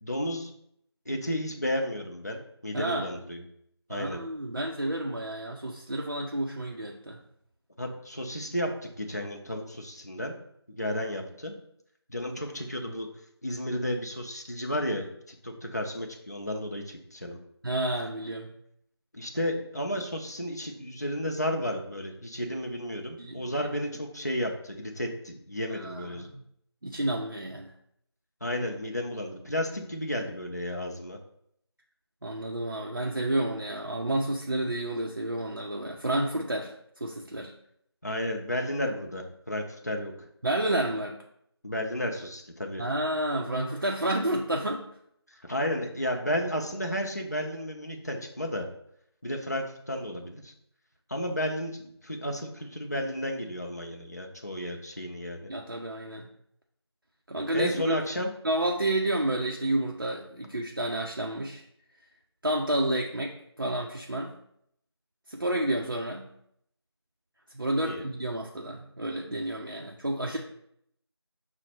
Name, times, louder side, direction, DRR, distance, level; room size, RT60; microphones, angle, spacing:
voice 1, 0.0-0.5 1.1-3.4 3.9-4.2 7.8-10.3 10.8-11.6 12.1-13.1 13.4-17.4 19.1-26.3 28.4-31.2 38.0-40.3 41.6-42.8 45.4-48.7 49.2-50.5 51.1-55.5 57.5-58.3 67.8-68.0, left 1 dB, 40° left, 2 dB, 0.5 m, -32 dB
voice 2, 2.7-3.1 3.9-7.2 17.6-18.5 23.2-23.5 25.7-26.5 26.8-27.7 32.2-37.5 40.4-41.2 42.8-44.9 55.5-56.3 57.3-58.0 58.4-61.6 62.4-64.4 65.3-66.3 67.5-70.4, right 1 dB, 50° right, 0 dB, 0.5 m, -30 dB
5.7 x 2.1 x 4.3 m, 0.72 s
figure-of-eight pair, 175°, 14 cm